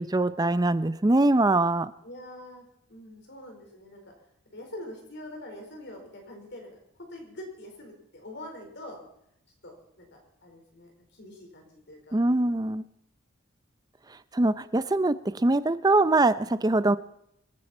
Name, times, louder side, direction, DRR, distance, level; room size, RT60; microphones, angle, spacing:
voice 1, 0.0-1.9 12.1-12.8 14.3-17.0, right 2 dB, 20° right, 14 dB, 0.5 m, -23 dB
voice 2, 2.0-4.0 4.5-9.0 9.6-10.1 10.4-12.6, left 1 dB, 55° left, 2 dB, 4.6 m, -44 dB
27.0 x 10.0 x 4.4 m, 0.77 s
head